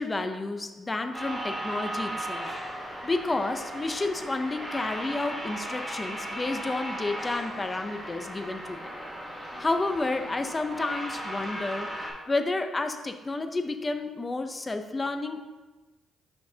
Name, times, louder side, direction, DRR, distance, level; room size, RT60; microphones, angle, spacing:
voice 1, 0.0-2.5 3.0-8.8 9.6-15.4, left 2 dB, 25° left, 7 dB, 0.6 m, -30 dB
sound 1, 1.1-12.1, right 1 dB, ahead, 1.8 m, -36 dB
6.8 x 5.9 x 2.8 m, 1.2 s
cardioid pair, 90°, 0 cm